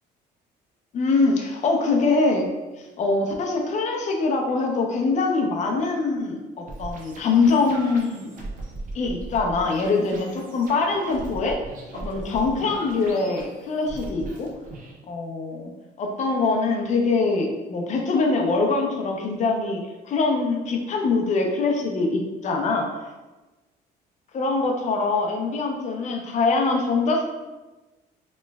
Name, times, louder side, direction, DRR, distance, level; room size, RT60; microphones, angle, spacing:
voice 1, 0.9-2.5 2.8-8.3 8.9-11.6 11.9-14.5 15.1-15.7 16.0-19.8 20.1-22.9 24.3-27.3, left 3 dB, 45° left, 1 dB, 0.6 m, -23 dB
sound 1, 6.7-14.9, right 2 dB, 50° right, 0.7 m, -38 dB
3.0 x 3.0 x 2.3 m, 1.2 s
cardioid pair, 110°, 17 cm